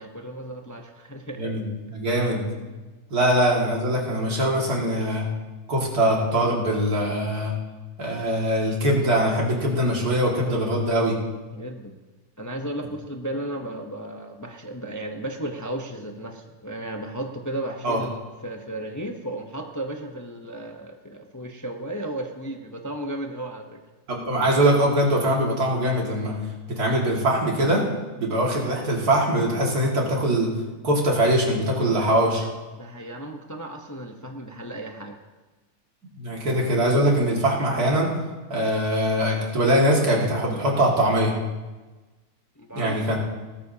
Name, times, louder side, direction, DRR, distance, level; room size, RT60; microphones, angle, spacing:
voice 1, 0.0-1.5 11.5-12.0 12.4-23.8 32.8-35.1 42.6-43.2, right 1 dB, 20° left, 3 dB, 0.6 m, -34 dB
voice 2, 1.4-2.5 3.1-5.3 5.7-7.5 8.0-11.2 17.8-18.0 24.1-26.3 26.7-27.9 28.2-30.6 30.8-32.4 36.2-38.1 38.5-41.4 42.7-43.2, right 1 dB, 85° right, -2 dB, 2.7 m, -22 dB
18.5 x 13.5 x 2.8 m, 1.2 s
omnidirectional pair, 1.6 m